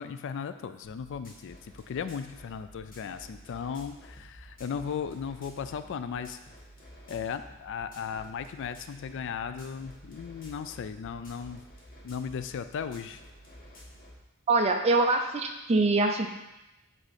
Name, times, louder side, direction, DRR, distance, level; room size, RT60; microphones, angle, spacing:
voice 1, 0.0-6.4 7.1-11.6 12.0-13.2, left 6 dB, 55° left, 11 dB, 0.3 m, -36 dB
sound 1, 0.8-14.2, equal, 40° left, 1.3 m, -51 dB
voice 2, 14.5-16.3, right 3 dB, 30° right, 4 dB, 0.5 m, -24 dB
7.9 x 3.6 x 4.2 m, 0.96 s
head